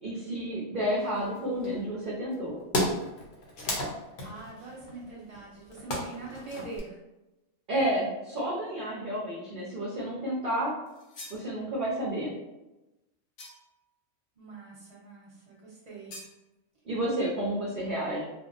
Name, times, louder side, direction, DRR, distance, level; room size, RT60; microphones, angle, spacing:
voice 1, 0.0-2.6 7.7-10.7 11.3-12.3 16.8-18.3, right 1 dB, 50° right, -7 dB, 0.7 m, -30 dB
sound 1, 1.0-1.7 2.3-2.4 2.6-6.8, left 1 dB, 55° left, 0.8 m, -33 dB
voice 2, 4.2-7.0 14.4-16.2, right 3 dB, 30° right, -6 dB, 1.0 m, -43 dB
sound 2, 10.9-11.5 13.4-13.8 16.1-16.4, left 2 dB, 80° left, 1.1 m, -46 dB
3.4 x 2.0 x 2.6 m, 1.0 s
omnidirectional pair, 1.4 m